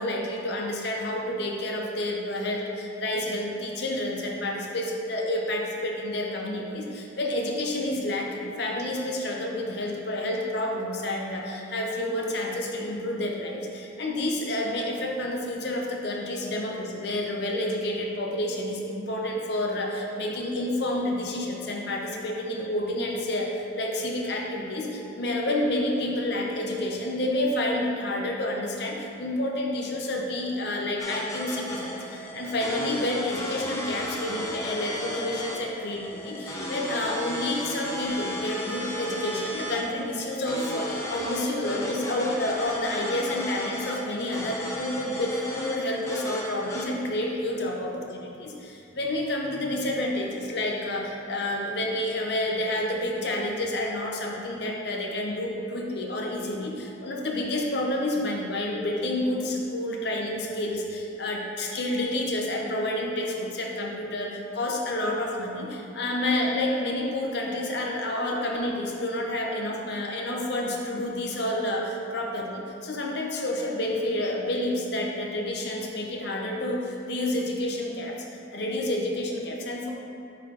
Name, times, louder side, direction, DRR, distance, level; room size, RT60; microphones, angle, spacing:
voice 1, 0.0-47.9 48.4-78.2 78.5-79.9, left 1 dB, 60° left, -1 dB, 0.7 m, -29 dB
sound 1, 31.0-46.8, left 1 dB, 15° left, 0.6 m, -35 dB
8.3 x 4.1 x 2.9 m, 2.7 s
head